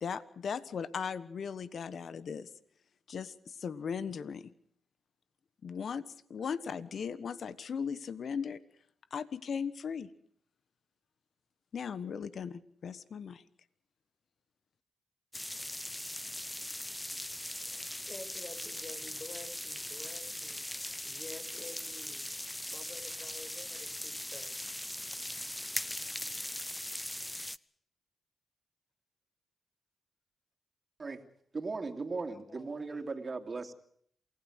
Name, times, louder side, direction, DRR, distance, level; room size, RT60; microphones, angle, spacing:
voice 1, 0.0-2.5 3.1-4.5 5.6-6.0 6.3-8.6 9.1-10.1 11.7-13.4, left 6 dB, 65° left, 14 dB, 1.3 m, -38 dB
sound 1, 15.3-27.6, left 1 dB, 10° left, 0.8 m, -40 dB
voice 2, 17.5-24.6 32.3-33.0, left 3 dB, 35° left, 5 dB, 6.1 m, -50 dB
voice 3, 31.5-33.7, right 4 dB, 45° right, 4 dB, 2.9 m, -37 dB
28.0 x 16.5 x 6.5 m, 0.64 s
supercardioid pair, 45°, 0 cm